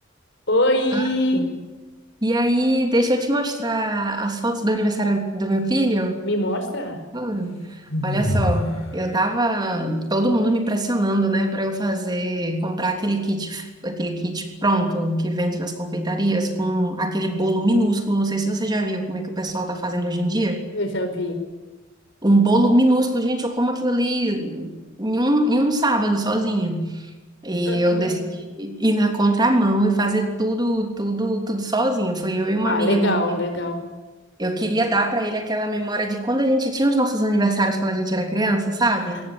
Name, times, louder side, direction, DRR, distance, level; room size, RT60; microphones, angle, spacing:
voice 1, 0.5-1.5 6.2-7.0 20.7-21.4 27.6-28.2 32.6-33.8, left 1 dB, 60° left, 7 dB, 5.0 m, -23 dB
voice 2, 2.2-6.2 7.1-20.6 22.2-24.7 25.0-27.1 27.4-33.1 34.4-39.2, right 1 dB, 20° right, 4 dB, 3.2 m, -22 dB
sound 1, 7.9-8.8, equal, 85° left, 6.4 m, -23 dB
22.5 x 19.5 x 9.9 m, 1.2 s
head